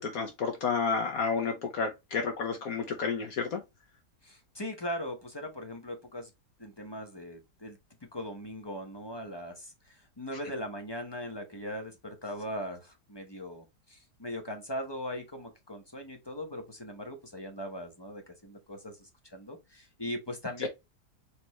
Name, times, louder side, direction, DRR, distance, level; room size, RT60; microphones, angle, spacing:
voice 1, 0.0-3.6, left 5 dB, 65° left, 1.1 m, -31 dB
voice 2, 4.2-6.3 6.6-7.8 8.1-20.7, equal, 25° left, 0.6 m, -40 dB
4.2 x 3.2 x 3.0 m
omnidirectional pair, 1.8 m